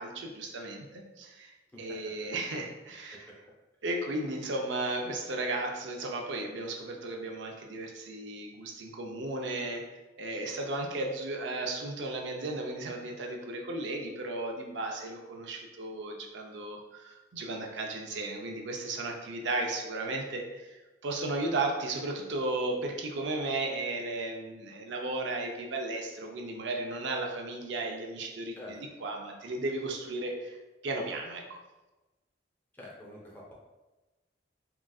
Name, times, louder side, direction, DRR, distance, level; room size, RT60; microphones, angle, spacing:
voice 1, 0.0-3.2 3.8-9.8 10.2-30.6 30.8-31.6, right 2 dB, 75° right, 1 dB, 0.5 m, -35 dB
voice 2, 32.7-33.5, left 1 dB, 10° left, -4 dB, 0.6 m, -47 dB
3.9 x 2.4 x 2.3 m, 1.1 s
head